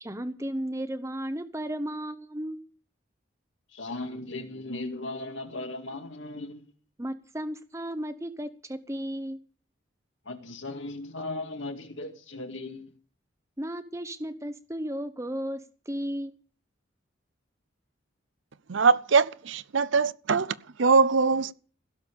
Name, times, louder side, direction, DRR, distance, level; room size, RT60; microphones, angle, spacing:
voice 1, 0.0-2.6 7.0-9.4 13.6-16.3, equal, 15° right, 0.9 m, -34 dB
voice 2, 3.7-6.7 10.3-13.0, left 2 dB, 70° left, 2.2 m, -37 dB
voice 3, 18.7-21.5, right 5 dB, 70° right, 0.6 m, -22 dB
16.5 x 7.1 x 8.4 m
head